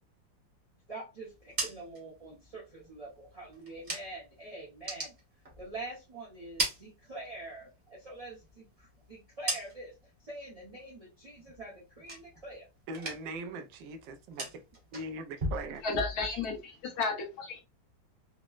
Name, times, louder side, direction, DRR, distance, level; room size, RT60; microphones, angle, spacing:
voice 1, 0.9-5.1 5.6-9.9 10.2-12.7, right 2 dB, 60° right, 0.3 m, -45 dB
sound 1, 1.3-4.4 4.7-6.0 6.3-7.6 8.0-10.1 10.5-10.9 11.3-12.6 12.9-13.5 13.7-16.6, right 1 dB, 30° right, 0.9 m, -39 dB
voice 2, 12.9-14.6 14.9-15.8, right 2 dB, 85° right, 1.3 m, -40 dB
voice 3, 15.8-17.6, left 4 dB, 65° left, 1.2 m, -33 dB
4.1 x 2.0 x 2.3 m
omnidirectional pair, 1.9 m